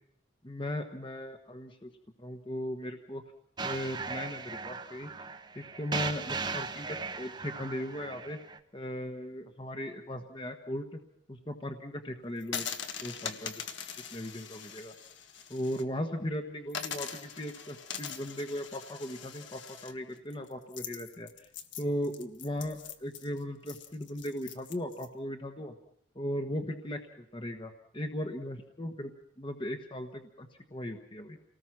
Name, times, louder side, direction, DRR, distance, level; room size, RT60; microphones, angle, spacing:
voice 1, 0.4-1.9 2.2-3.2 3.6-5.1 5.5-8.4 8.7-11.0 11.3-12.7 13.0-13.6 14.1-14.9 15.5-21.3 21.8-25.7 26.1-27.0 27.3-29.1 29.4-31.4, left 1 dB, 25° left, 5 dB, 1.3 m, -37 dB
sound 1, 3.6-8.6, right 4 dB, 20° right, 0.9 m, -38 dB
sound 2, 12.4-15.8 16.2-16.3 16.7-25.1, left 7 dB, 65° left, 1.6 m, -42 dB
29.0 x 19.0 x 6.0 m, 0.69 s
head